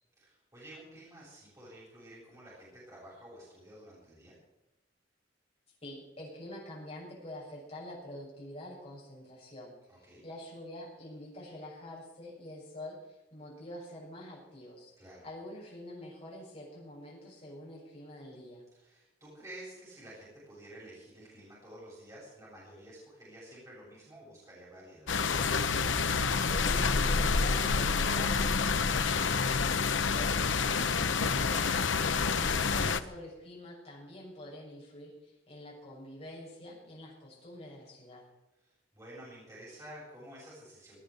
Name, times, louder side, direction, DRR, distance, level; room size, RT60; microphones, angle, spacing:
voice 1, 0.2-4.4 9.9-10.2 15.0-15.3 18.7-25.1 38.6-41.0, right 1 dB, 15° right, -7 dB, 7.7 m, -51 dB
voice 2, 5.8-14.9 15.2-18.6 26.5-31.7 32.2-38.3, left 1 dB, 35° left, -4 dB, 6.6 m, -46 dB
sound 1, 25.1-33.0, left 5 dB, 85° left, 0.9 m, -28 dB
18.0 x 9.2 x 8.3 m, 0.96 s
head